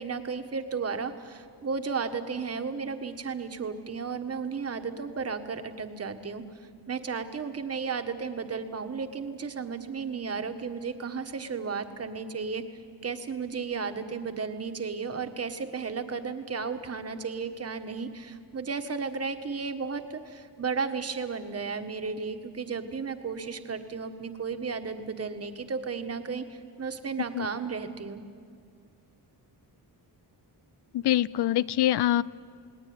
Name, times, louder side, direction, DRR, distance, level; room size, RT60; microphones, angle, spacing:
voice 1, 0.0-6.4 6.9-12.6 13.0-28.2, right 5 dB, 35° right, 7 dB, 1.5 m, -34 dB
voice 2, 30.9-32.2, left 13 dB, 70° left, 20 dB, 0.6 m, -24 dB
29.0 x 19.5 x 9.6 m, 2.2 s
wide cardioid pair, 160°, 41 cm